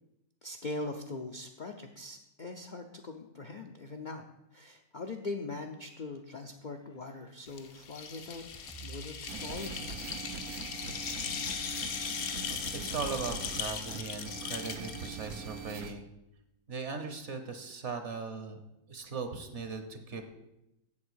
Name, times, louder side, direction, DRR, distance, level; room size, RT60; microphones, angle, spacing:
voice 1, 0.4-4.2 4.5-8.4 8.8-10.0, left 3 dB, 50° left, 3 dB, 0.5 m, -41 dB
sound 1, 6.1-11.9, right 2 dB, 5° left, 0.6 m, -55 dB
sound 2, 7.5-15.9, left 7 dB, 75° left, 1.3 m, -39 dB
sound 3, 9.3-15.9, right 6 dB, 75° right, 1.2 m, -42 dB
voice 2, 12.7-16.1 16.7-18.6 18.9-20.3, right 4 dB, 55° right, 7 dB, 1.3 m, -39 dB
7.7 x 7.5 x 6.2 m, 0.89 s
omnidirectional pair, 1.5 m